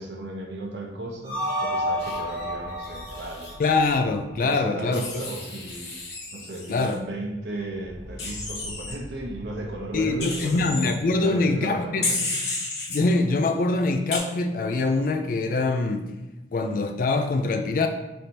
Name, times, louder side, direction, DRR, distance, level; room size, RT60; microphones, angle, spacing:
voice 1, 0.0-3.5 4.4-5.9 6.3-12.3, right 1 dB, 70° right, 1 dB, 0.7 m, -35 dB
sound 1, 1.1-6.3 6.6-6.7 6.9-11.3, equal, 30° left, 1.2 m, -47 dB
sound 2, 1.2-4.4, equal, 30° right, 1.1 m, -30 dB
Wild animals, 2.0-3.5 4.9-6.9 8.2-8.9 10.2-10.9 12.0-13.0 14.1-14.2, left 3 dB, 65° left, 1.0 m, -32 dB
voice 2, 3.6-5.0 6.7-7.0 9.9-12.1 12.9-16.1 16.5-17.9, left 3 dB, 50° left, 6 dB, 0.3 m, -24 dB
3.3 x 2.6 x 4.3 m, 1.0 s
head